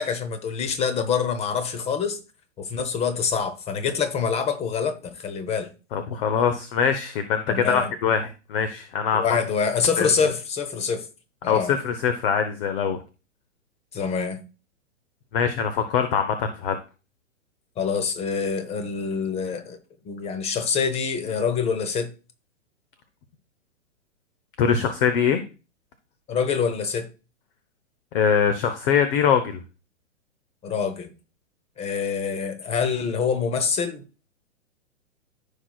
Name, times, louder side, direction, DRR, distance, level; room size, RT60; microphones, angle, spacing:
voice 1, 0.0-2.2 2.6-5.7 7.5-7.9 9.1-11.1 11.4-11.7 13.9-14.4 17.8-19.8 20.0-22.1 26.3-27.1 30.6-31.1 31.8-34.0, left 6 dB, 15° left, 0.8 m, -26 dB
voice 2, 5.9-9.2 10.0-10.3 11.4-13.0 15.3-16.8 24.6-25.4 28.1-29.6, left 7 dB, 45° left, 0.9 m, -23 dB
14.5 x 4.9 x 2.3 m
figure-of-eight pair, 115°, 39 cm